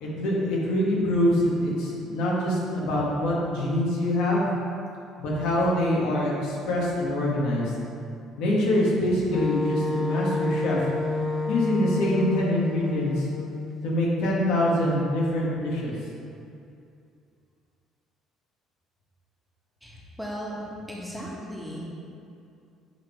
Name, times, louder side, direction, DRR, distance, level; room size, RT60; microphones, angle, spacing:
voice 1, 0.0-4.5 5.2-7.7 8.4-10.9 11.5-13.3 13.8-15.9, left 1 dB, 80° left, -4 dB, 1.6 m, -25 dB
Wind instrument woodwind instrument, 9.3-14.0, left 3 dB, 35° left, 0.4 m, -29 dB
voice 2, 19.8-20.5 20.9-21.9, equal, ahead, -5 dB, 1.5 m, -36 dB
8.0 x 3.5 x 4.7 m, 2.5 s
cardioid pair, 105°, 0 cm